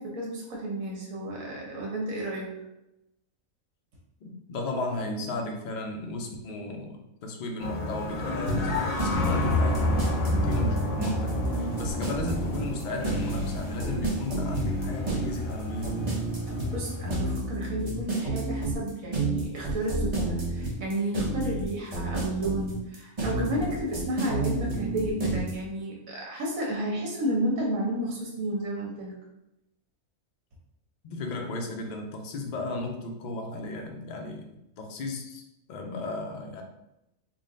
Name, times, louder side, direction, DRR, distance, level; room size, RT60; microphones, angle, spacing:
voice 1, 0.0-2.6 16.5-29.2, right 1 dB, 75° right, -2 dB, 1.4 m, -32 dB
voice 2, 4.2-11.4 11.8-16.0 31.0-34.4 34.8-35.4 35.7-36.6, left 2 dB, 85° left, 2 dB, 0.4 m, -34 dB
sound 1, 7.6-17.3, left 1 dB, 45° left, 0.7 m, -31 dB
sound 2, 8.5-25.5, right 2 dB, 30° right, 0.5 m, -30 dB
3.8 x 2.1 x 3.7 m, 0.89 s
omnidirectional pair, 1.5 m